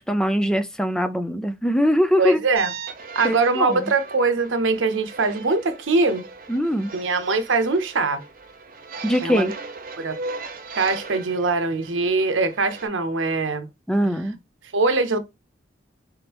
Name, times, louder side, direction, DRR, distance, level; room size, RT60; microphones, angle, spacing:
voice 1, 0.0-2.4 3.2-3.9 6.5-6.9 9.0-9.5 13.9-14.4, equal, 5° left, 0.4 m, -22 dB
voice 2, 2.2-2.7 3.2-6.3 6.9-8.2 9.2-9.5 10.0-10.2 10.8-13.7 14.7-15.2, right 3 dB, 90° right, 0.8 m, -22 dB
sound 1, 2.6-12.9, right 3 dB, 45° right, 0.6 m, -38 dB
3.8 x 3.6 x 2.9 m
head